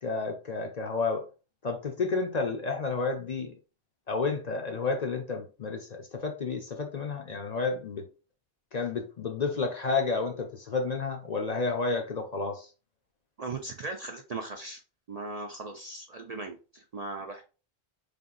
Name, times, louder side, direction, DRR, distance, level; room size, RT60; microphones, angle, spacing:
voice 1, 0.0-1.3 1.6-3.5 4.1-8.1 8.7-12.7, left 4 dB, 50° left, 0.6 m, -31 dB
voice 2, 13.4-14.8 15.1-17.4, right 3 dB, 55° right, 0.4 m, -38 dB
3.3 x 2.5 x 3.8 m
omnidirectional pair, 1.1 m